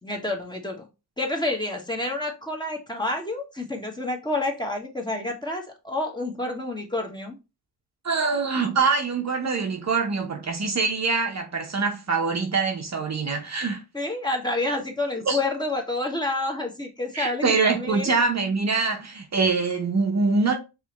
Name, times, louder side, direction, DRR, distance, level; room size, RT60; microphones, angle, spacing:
voice 1, 0.0-0.9 1.2-7.3 13.9-18.1, left 2 dB, 10° left, 1.3 m, -29 dB
voice 2, 8.0-13.8 15.3-15.4 17.1-20.5, right 4 dB, 40° right, 0.8 m, -24 dB
4.7 x 3.2 x 3.0 m
cardioid pair, 75°, 42 cm